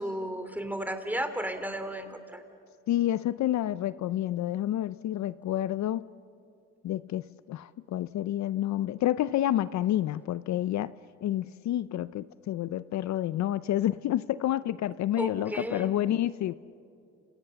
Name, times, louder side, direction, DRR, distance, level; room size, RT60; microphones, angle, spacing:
voice 1, 0.0-2.4 15.2-15.9, right 1 dB, 5° right, 8 dB, 3.0 m, -34 dB
voice 2, 2.9-6.0 6.8-10.9 11.2-16.5, left 13 dB, 65° left, 16 dB, 0.6 m, -29 dB
30.0 x 27.5 x 6.9 m, 2.4 s
cardioid pair, 90°, 30 cm